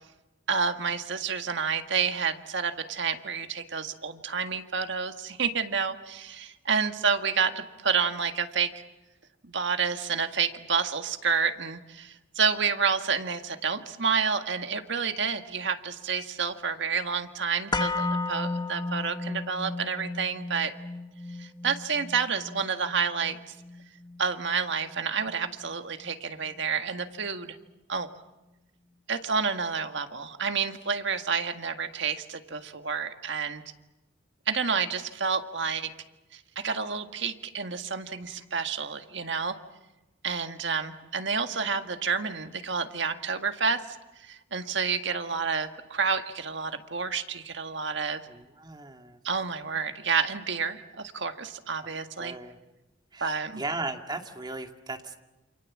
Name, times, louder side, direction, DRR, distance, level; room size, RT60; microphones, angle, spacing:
voice 1, 0.5-8.7 9.4-20.7 21.4-23.4 24.2-27.6 27.9-28.1 29.1-33.6 34.5-35.9 36.3-39.6 40.2-48.2 49.2-52.3 53.2-53.6, right 5 dB, 65° right, 7 dB, 1.8 m, -29 dB
sound 1, 17.7-25.8 26.1-26.2, left 3 dB, 20° left, 1.3 m, -34 dB
voice 2, 48.3-49.2 51.8-51.9 52.2-52.6 53.1-55.2, right 2 dB, 20° right, 4 dB, 2.3 m, -37 dB
29.0 x 27.5 x 7.4 m, 1.1 s
head